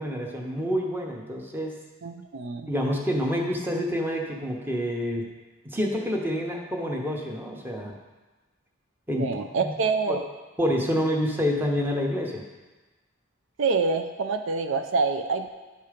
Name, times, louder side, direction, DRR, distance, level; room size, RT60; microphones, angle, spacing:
voice 1, 0.0-1.8 2.6-5.2 5.6-7.9 9.1-9.3 9.6-9.7 10.1-10.2 10.6-12.4, equal, 10° right, 0 dB, 0.9 m, -27 dB
voice 2, 2.0-2.7 9.2-10.2 13.6-15.5, right 4 dB, 65° right, 7 dB, 0.5 m, -26 dB
10.5 x 4.4 x 5.0 m, 1.2 s
head